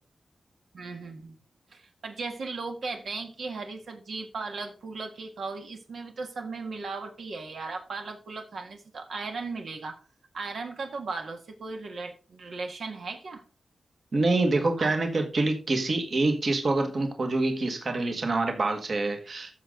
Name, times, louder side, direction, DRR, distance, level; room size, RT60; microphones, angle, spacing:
voice 1, 0.7-1.4 1.7-10.0 10.3-13.4 14.8-15.0, right 4 dB, 70° right, 4 dB, 1.8 m, -37 dB
voice 2, 14.1-19.5, right 2 dB, 45° right, 5 dB, 1.6 m, -26 dB
14.0 x 6.4 x 3.8 m, 0.34 s
wide cardioid pair, 165°, 0 cm